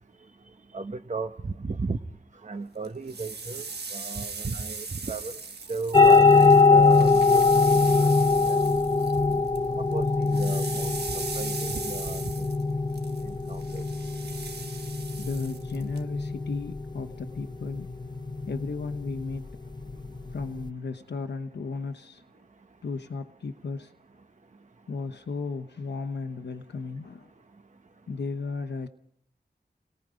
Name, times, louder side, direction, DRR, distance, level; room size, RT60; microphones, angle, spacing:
voice 1, 0.7-2.0 2.4-3.6 3.9-5.4 5.7-7.4 7.7-7.9 8.5-8.6 9.7-10.9 11.3-12.5 13.3-13.8, right 4 dB, 45° right, 7 dB, 0.9 m, -35 dB
sound 1, 2.8-9.7 9.9-16.0, right 4 dB, 75° right, 1.3 m, -39 dB
sound 2, 5.9-20.7, left 4 dB, 25° left, 0.8 m, -23 dB
voice 2, 15.2-18.0 18.5-19.5 20.3-22.2 22.8-23.9 24.9-27.3 28.1-28.9, left 4 dB, 90° left, 7 dB, 1.0 m, -34 dB
28.5 x 18.5 x 5.1 m, 0.69 s
wide cardioid pair, 55°, 17 cm